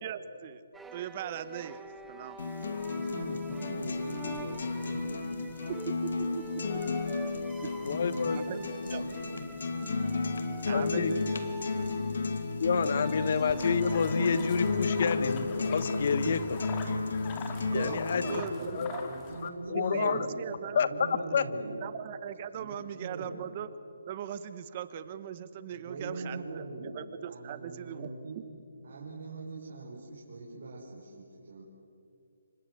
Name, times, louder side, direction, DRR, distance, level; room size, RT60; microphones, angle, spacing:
voice 1, 0.0-0.6 0.9-1.8 2.1-2.4 5.7-6.8 7.6-7.7 8.3-8.6 8.9-9.0 10.6-11.4 12.0-12.3 16.2-16.4 17.6-19.0 19.7-20.8 21.8-23.7 24.1-28.4, right 9 dB, 30° right, 13 dB, 1.3 m, -39 dB
sound 1, 0.7-15.2, right 3 dB, 5° right, 1.1 m, -48 dB
sound 2, 2.4-18.4, left 3 dB, 70° left, 2.5 m, -33 dB
voice 2, 2.8-5.3 7.8-9.4 17.9-20.4 20.7-21.8 22.5-23.4 25.7-26.9 27.3-28.4 28.8-31.6, right 2 dB, 60° right, -3 dB, 6.0 m, -42 dB
voice 3, 7.8-8.4 10.7-11.1 12.6-16.6 17.7-18.2 18.5-19.1 19.4-20.3 20.7-21.4, left 6 dB, 50° left, 13 dB, 1.4 m, -29 dB
sound 3, 13.5-19.5, left 5 dB, 20° left, 2.4 m, -44 dB
28.0 x 25.0 x 7.9 m, 2.6 s
hypercardioid pair, 160°, 0 cm